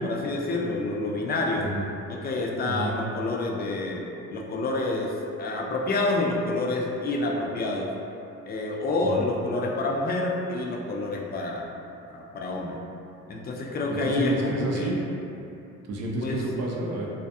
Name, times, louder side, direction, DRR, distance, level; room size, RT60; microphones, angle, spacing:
voice 1, 0.0-1.7 2.1-4.0 4.3-5.1 5.4-7.9 8.5-11.6 12.1-12.8 13.3-15.0 16.2-16.4, left 2 dB, 30° left, -1 dB, 0.4 m, -28 dB
voice 2, 13.9-15.0 15.9-17.1, right 2 dB, 55° right, -2 dB, 0.5 m, -30 dB
2.5 x 2.3 x 2.6 m, 2.8 s
cardioid pair, 90°, 30 cm